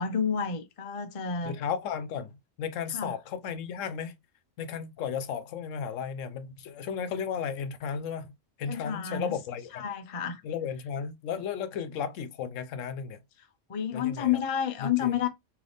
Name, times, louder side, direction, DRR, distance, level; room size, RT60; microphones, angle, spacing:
voice 1, 0.0-1.5 2.9-3.1 8.7-9.4 9.7-10.4 13.7-15.3, left 8 dB, 45° left, 0.4 m, -30 dB
voice 2, 1.4-4.2 4.6-8.3 8.6-9.9 10.4-13.2 13.9-14.4 14.8-15.1, left 7 dB, 80° left, 1.0 m, -34 dB
3.4 x 2.8 x 3.9 m
omnidirectional pair, 1.3 m